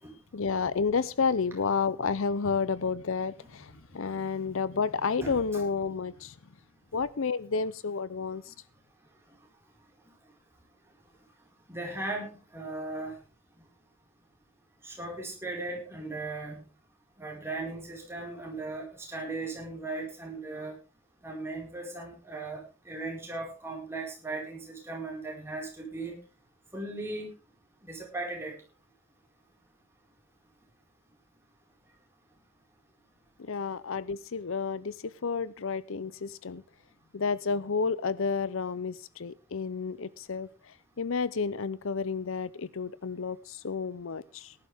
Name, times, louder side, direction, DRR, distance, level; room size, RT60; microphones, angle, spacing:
voice 1, 0.3-6.3 6.9-8.5 33.4-36.6 37.1-40.5 41.0-44.5, left 5 dB, 65° left, 18 dB, 0.6 m, -31 dB
voice 2, 5.2-5.6 11.7-13.2 14.8-16.6 17.2-20.8 21.2-26.2 26.7-27.3 27.8-28.6, right 2 dB, 10° right, -1 dB, 4.8 m, -37 dB
18.5 x 11.5 x 3.5 m, 0.31 s
head